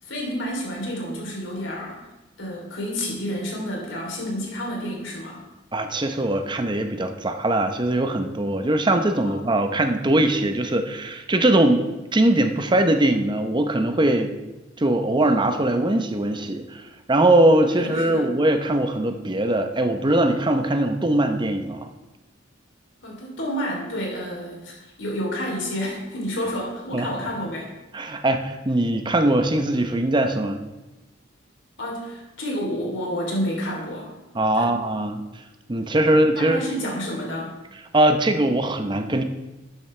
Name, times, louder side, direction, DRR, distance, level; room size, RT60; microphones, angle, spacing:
voice 1, 0.0-2.0 2.4-5.4 9.2-9.4 17.8-18.3 23.0-27.7 31.8-34.1 34.5-34.8 36.1-37.6, equal, 75° left, -1 dB, 3.1 m, -30 dB
voice 2, 5.7-11.8 12.1-14.3 14.8-16.8 17.1-21.9 26.9-27.1 27.9-30.6 34.3-35.2 35.7-36.6 37.9-39.2, right 1 dB, 25° right, 7 dB, 0.7 m, -21 dB
12.5 x 8.9 x 3.3 m, 1.1 s
head